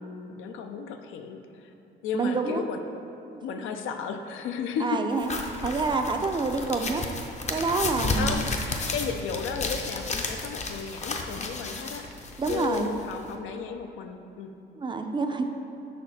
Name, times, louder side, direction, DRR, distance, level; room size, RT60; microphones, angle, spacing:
voice 1, 0.0-1.7 2.0-2.8 3.4-5.0 8.1-12.1 12.5-14.5, left 6 dB, 80° left, 6 dB, 0.4 m, -34 dB
voice 2, 2.1-2.7 3.3-3.4 4.8-5.3 5.6-7.1 7.5-8.4 12.4-12.9 14.8-15.5, right 3 dB, 25° right, 5 dB, 0.4 m, -27 dB
sound 1, 5.2-13.4, left 3 dB, 35° left, 0.5 m, -33 dB
5.5 x 4.2 x 4.1 m, 2.7 s
cardioid pair, 90°, 20 cm